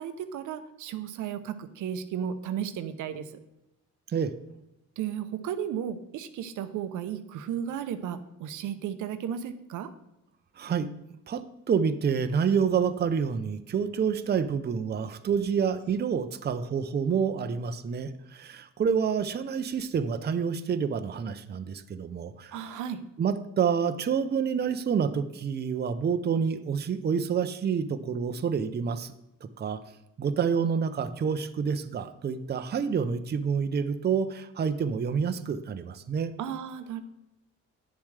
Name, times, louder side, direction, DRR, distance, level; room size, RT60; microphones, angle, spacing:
voice 1, 0.0-3.4 5.0-9.9 22.5-23.0 36.4-37.0, right 9 dB, 80° right, 10 dB, 0.7 m, -34 dB
voice 2, 10.6-10.9 11.3-22.8 23.2-29.1 29.4-29.8 30.2-36.3, right 6 dB, 35° right, 9 dB, 0.6 m, -28 dB
9.6 x 7.1 x 3.3 m, 0.90 s
cardioid pair, 90°, 30 cm